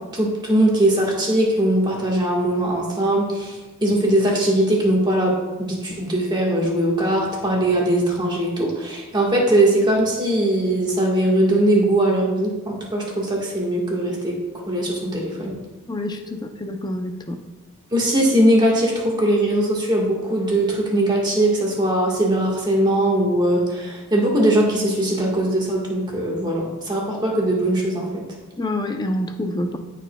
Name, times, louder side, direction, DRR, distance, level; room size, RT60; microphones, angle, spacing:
voice 1, 0.1-14.4 14.7-15.5 17.9-28.2, right 1 dB, 20° right, -3 dB, 1.5 m, -20 dB
voice 2, 15.9-17.4 28.6-29.8, left 1 dB, 20° left, 5 dB, 0.5 m, -27 dB
14.5 x 4.9 x 2.3 m, 1.1 s
head